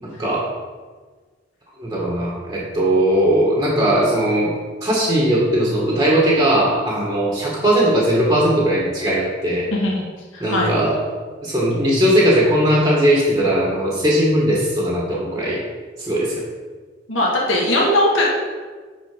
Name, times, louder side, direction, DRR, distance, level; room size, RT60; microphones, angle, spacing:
voice 1, 0.0-0.5 1.8-9.7 10.4-15.6 16.0-16.4, right 1 dB, 15° right, -5 dB, 1.8 m, -19 dB
voice 2, 9.7-10.0 10.3-10.7 17.1-18.2, left 1 dB, 85° left, -3 dB, 1.9 m, -19 dB
10.5 x 4.5 x 5.3 m, 1.4 s
head